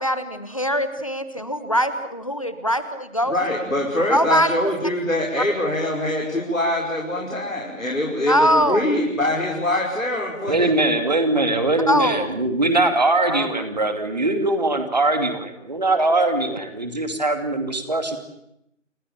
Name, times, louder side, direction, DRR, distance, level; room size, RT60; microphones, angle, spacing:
voice 1, 0.0-3.6 4.1-4.6 8.3-8.8 11.6-12.3 13.3-13.5, equal, 25° left, 11 dB, 1.2 m, -22 dB
voice 2, 3.3-10.7, left 1 dB, 80° left, -2 dB, 5.8 m, -24 dB
voice 3, 10.5-18.2, right 2 dB, 30° right, 7 dB, 2.5 m, -21 dB
29.0 x 19.5 x 7.4 m, 0.80 s
figure-of-eight pair, 170°, 39 cm